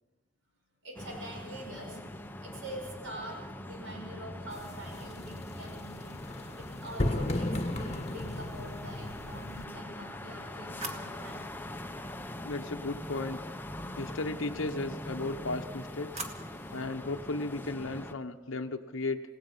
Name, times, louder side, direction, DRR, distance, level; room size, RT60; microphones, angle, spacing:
voice 1, 0.8-11.5, right 1 dB, 70° right, 0 dB, 6.6 m, -45 dB
sound 1, 1.0-18.1, left 1 dB, 10° left, 0.8 m, -42 dB
sound 2, 4.5-9.6, left 1 dB, 30° left, 1.3 m, -35 dB
sound 3, 9.9-13.0 15.4-17.0, right 3 dB, 35° right, 2.1 m, -46 dB
voice 2, 12.4-13.4 14.0-16.2 16.7-19.2, left 2 dB, 70° left, 4 dB, 0.9 m, -35 dB
28.5 x 17.5 x 5.5 m, 1.2 s
head